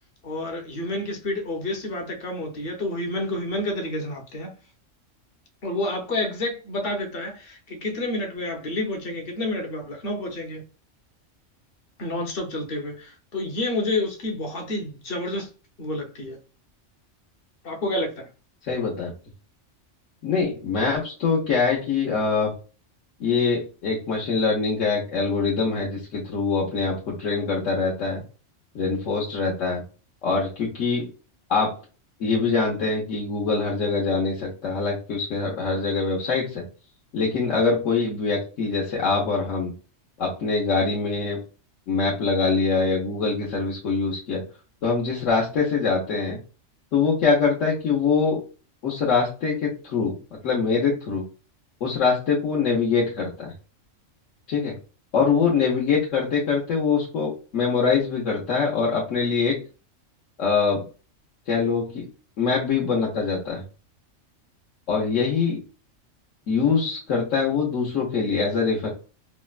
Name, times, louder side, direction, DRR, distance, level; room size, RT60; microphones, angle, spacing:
voice 1, 0.2-4.5 5.6-10.6 12.0-15.5 15.8-16.4 17.6-18.3, left 1 dB, 50° left, 1.0 m, -29 dB
voice 2, 18.7-19.1 20.2-22.5 23.2-28.2 28.7-29.8 30.2-31.1 31.5-31.7 32.2-36.6 37.1-39.7 40.2-41.4 41.9-44.4 44.8-46.4 46.9-48.4 48.8-50.2 50.4-51.2 51.8-53.5 54.5-54.7 55.1-59.6 60.4-60.8 61.5-62.1 62.4-63.6 64.9-65.6 66.5-68.9, left 5 dB, 80° left, 1.3 m, -23 dB
4.2 x 2.1 x 2.3 m
omnidirectional pair, 1.3 m